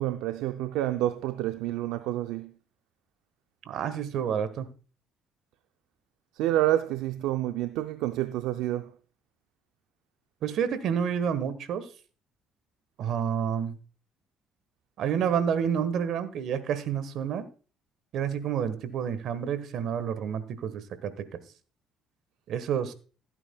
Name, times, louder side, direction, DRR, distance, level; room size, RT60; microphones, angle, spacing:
voice 1, 0.0-2.5 6.4-8.9, right 14 dB, 85° right, 0.4 m, -28 dB
voice 2, 3.7-4.7 10.4-11.8 13.0-13.8 15.0-17.4 18.1-21.1 22.5-22.9, right 8 dB, 70° right, 1.2 m, -29 dB
15.5 x 9.0 x 2.2 m
supercardioid pair, 80°, 0 cm